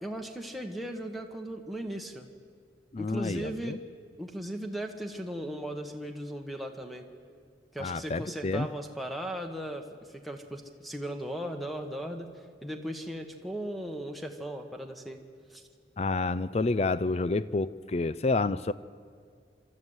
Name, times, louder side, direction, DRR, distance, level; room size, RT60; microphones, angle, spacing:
voice 1, 0.0-2.3 3.0-3.8 4.2-7.0 7.7-12.3 12.6-15.2 15.5-15.6, right 1 dB, ahead, 5 dB, 1.1 m, -37 dB
voice 2, 2.9-3.8 7.8-8.7 16.0-18.7, left 3 dB, 35° left, 16 dB, 0.4 m, -29 dB
27.0 x 13.0 x 8.0 m, 2.1 s
head